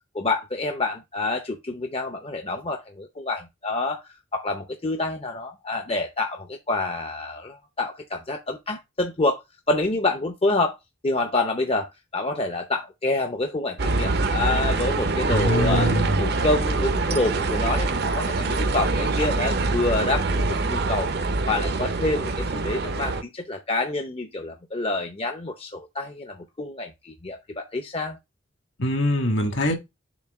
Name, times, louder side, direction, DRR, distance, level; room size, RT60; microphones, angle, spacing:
voice 1, 0.1-9.4 9.7-10.8 11.0-11.9 12.1-15.9 16.2-21.1 21.5-28.2, left 2 dB, 30° left, 0.6 m, -27 dB
sound 1, 13.8-23.2, right 3 dB, 50° right, 0.6 m, -24 dB
voice 2, 15.3-16.2 28.8-29.8, equal, 60° left, 1.6 m, -23 dB
7.1 x 2.8 x 5.5 m
head